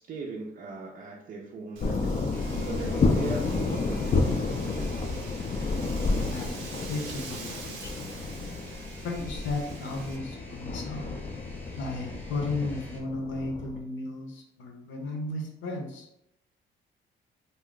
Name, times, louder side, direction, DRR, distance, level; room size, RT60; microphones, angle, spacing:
voice 1, 0.0-5.0, right 3 dB, 45° right, -2 dB, 0.5 m, -39 dB
sound 1, 1.8-13.8, left 3 dB, 35° left, 0.4 m, -30 dB
Wind, 1.8-10.2, right 4 dB, 85° right, 0.7 m, -45 dB
sound 2, 2.3-13.0, equal, 5° left, 0.8 m, -50 dB
voice 2, 6.2-8.4 9.0-11.1 11.8-16.1, left 2 dB, 75° left, 1 dB, 0.7 m, -35 dB
2.5 x 2.1 x 3.7 m, 0.83 s
cardioid pair, 90°, 20 cm